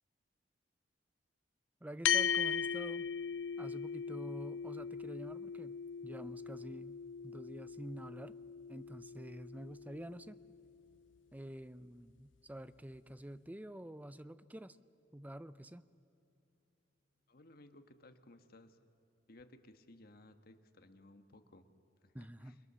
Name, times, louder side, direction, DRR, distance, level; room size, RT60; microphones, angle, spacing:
voice 1, 1.8-3.1 3.6-8.4 8.7-10.4 11.3-14.8 15.1-15.8 22.1-22.6, right 1 dB, 10° right, 14 dB, 0.5 m, -48 dB
sound 1, 2.0-10.7, left 7 dB, 90° left, 0.5 m, -38 dB
voice 2, 17.3-18.8 19.3-21.7 22.0-22.5, left 1 dB, 55° left, 7 dB, 1.4 m, -59 dB
29.5 x 22.5 x 6.9 m, 2.9 s
head